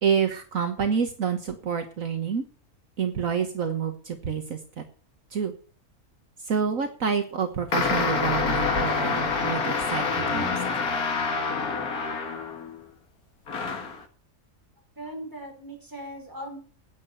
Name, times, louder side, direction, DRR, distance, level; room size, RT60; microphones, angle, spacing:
voice 1, 0.0-2.4 3.0-4.8 5.3-5.5 6.4-10.6, right 6 dB, 65° right, 6 dB, 1.7 m, -28 dB
sound 1, 7.7-12.8 13.5-14.0, left 4 dB, 90° left, 2.2 m, -27 dB
voice 2, 15.0-16.6, equal, 15° right, 1 dB, 4.6 m, -39 dB
10.5 x 8.7 x 7.8 m, 0.39 s
omnidirectional pair, 1.5 m